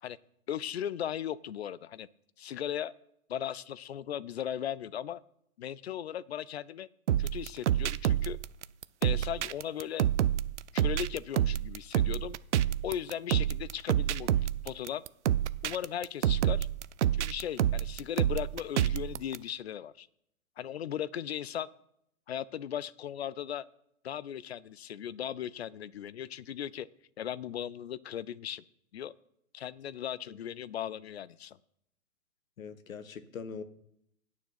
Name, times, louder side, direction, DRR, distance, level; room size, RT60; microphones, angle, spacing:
voice 1, 0.5-2.1 2.4-2.9 3.3-5.2 5.6-6.9 7.2-8.4 9.0-10.1 10.7-12.4 12.8-14.3 14.6-15.0 15.6-16.7 17.1-20.1 20.6-21.7 22.3-23.6 24.0-26.9 27.2-28.6 28.9-29.1 29.5-31.6, left 10 dB, 50° left, 20 dB, 0.4 m, -37 dB
sound 1, 7.1-19.4, right 11 dB, 55° right, 0.5 m, -28 dB
voice 2, 32.6-33.6, left 5 dB, 65° left, 13 dB, 1.1 m, -42 dB
9.1 x 7.1 x 5.8 m, 0.76 s
hypercardioid pair, 130°, 44 cm